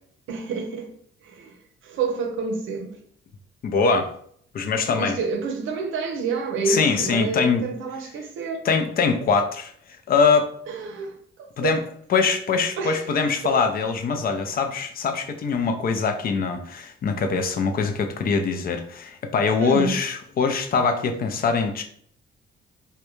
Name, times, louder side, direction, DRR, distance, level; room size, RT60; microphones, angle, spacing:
voice 1, 0.3-0.9 1.2-3.0 5.0-8.6 10.7-11.8 12.8-13.0 13.4-13.6 19.6-20.0, right 4 dB, 80° right, 0.6 m, -29 dB
voice 2, 3.6-4.1 4.5-5.2 6.7-7.6 8.6-9.7 10.1-10.5 11.6-11.8 12.1-21.8, left 5 dB, 50° left, 0.4 m, -23 dB
2.4 x 2.2 x 3.0 m
cardioid pair, 90°, 20 cm